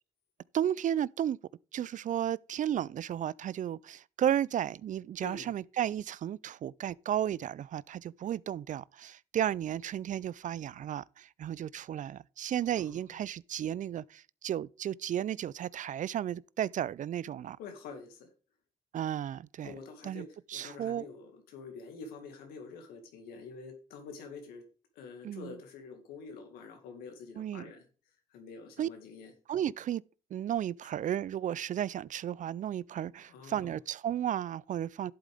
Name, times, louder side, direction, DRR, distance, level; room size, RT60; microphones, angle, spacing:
voice 1, 0.5-1.4 1.7-17.6 18.9-19.7 20.0-21.1 25.2-25.5 27.4-27.7 28.8-28.9 29.5-30.0 30.3-35.1, right 10 dB, 55° right, 0.4 m, -33 dB
voice 2, 5.2-5.5 12.8-13.2 17.6-18.3 19.6-20.3 20.5-24.6 25.0-27.8 28.3-29.3 33.3-33.8, left 4 dB, 85° left, 2.1 m, -47 dB
11.5 x 8.1 x 3.5 m
hypercardioid pair, 45°, 15 cm